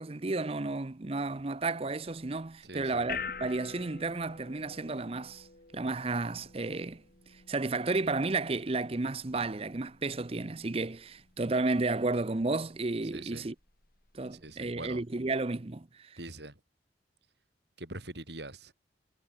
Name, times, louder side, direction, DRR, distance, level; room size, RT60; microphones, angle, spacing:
voice 1, 0.0-5.5 5.7-7.0 7.5-13.5 14.1-16.2, right 3 dB, 30° right, 0.7 m, -32 dB
sound 1, 2.1-15.6, left 6 dB, 50° left, 3.1 m, -48 dB
voice 2, 2.6-3.1 13.1-13.5 14.3-15.0 16.2-16.6 17.8-18.7, right 2 dB, 65° right, 5.7 m, -43 dB
head